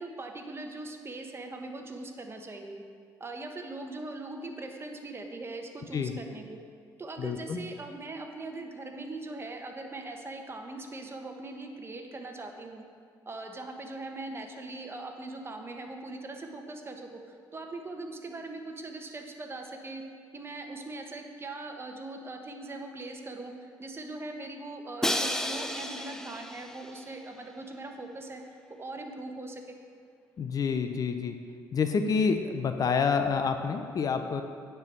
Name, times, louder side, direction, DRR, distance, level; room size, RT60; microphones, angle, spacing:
voice 1, 0.0-2.8 3.2-6.6 7.0-12.9 13.3-20.0 20.3-28.4 28.8-29.7, right 2 dB, 30° right, 4 dB, 1.2 m, -41 dB
voice 2, 7.2-7.6 30.4-31.4 31.7-34.4, left 5 dB, 50° left, 7 dB, 0.7 m, -28 dB
Crash cymbal, 25.0-27.0, left 1 dB, 5° left, 0.7 m, -32 dB
9.6 x 4.7 x 7.3 m, 2.1 s
supercardioid pair, 70°, 8 cm